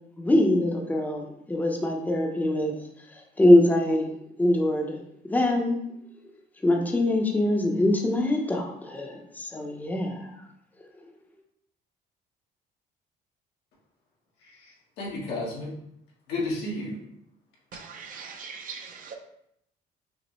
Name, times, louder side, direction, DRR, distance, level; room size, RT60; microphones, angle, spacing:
voice 1, 0.2-2.7 3.4-4.1 4.4-5.0 5.3-5.8 6.6-10.3, left 1 dB, 10° left, 1 dB, 0.6 m, -23 dB
voice 2, 14.4-15.7 16.3-17.0, left 2 dB, 90° left, -4 dB, 1.4 m, -32 dB
voice 3, 17.7-19.1, right 6 dB, 55° right, 4 dB, 0.6 m, -41 dB
6.1 x 2.1 x 3.0 m, 0.74 s
cardioid pair, 110°, 17 cm